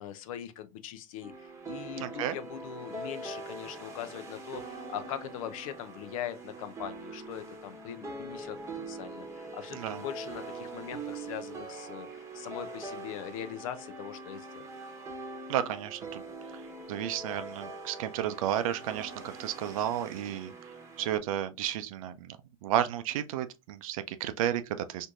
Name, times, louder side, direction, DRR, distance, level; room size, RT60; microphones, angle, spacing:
voice 1, 0.0-14.6, left 10 dB, 70° left, 0.6 m, -41 dB
sound 1, 1.2-21.2, right 3 dB, 15° right, 1.0 m, -43 dB
voice 2, 2.0-2.4 9.7-10.0 15.5-16.2 16.5-16.6 16.9-20.5 21.0-22.4 22.6-25.1, right 11 dB, 70° right, 0.5 m, -32 dB
4.4 x 2.6 x 2.5 m
hypercardioid pair, 90°, 18 cm